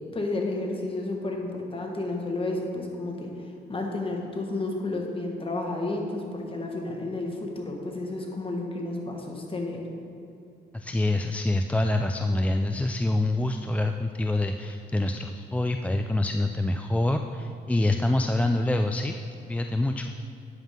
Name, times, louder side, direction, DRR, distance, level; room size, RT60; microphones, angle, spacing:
voice 1, 0.1-3.3 3.7-9.8, left 2 dB, 25° left, 1 dB, 1.5 m, -31 dB
voice 2, 10.7-19.1 19.5-20.1, left 2 dB, 5° left, 5 dB, 0.3 m, -26 dB
9.2 x 9.2 x 3.7 m, 2.5 s
cardioid pair, 90°, 20 cm